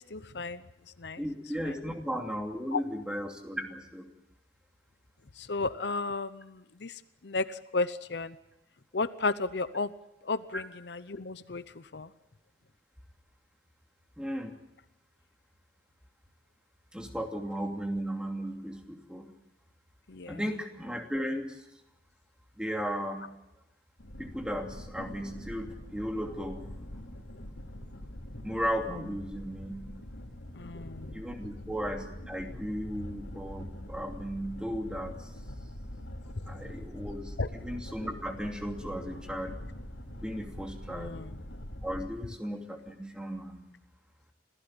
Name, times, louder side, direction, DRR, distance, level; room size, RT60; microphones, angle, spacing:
voice 1, 0.1-0.6 1.0-1.2 2.7-2.8 5.4-8.4 8.9-9.9 10.2-12.1 20.1-20.4 30.5-31.1 37.4-37.5 40.9-41.4, left 3 dB, 60° left, 13 dB, 0.7 m, -33 dB
voice 2, 1.2-4.1 10.5-10.6 14.2-14.5 16.9-19.3 20.3-21.6 22.6-23.3 24.2-26.6 28.4-29.9 31.1-35.3 36.5-39.5 40.2-41.1 41.8-43.7, equal, 5° right, 2 dB, 2.7 m, -35 dB
sound 1, 24.0-42.1, left 1 dB, 90° left, 3.0 m, -44 dB
26.0 x 16.0 x 8.9 m, 0.90 s
head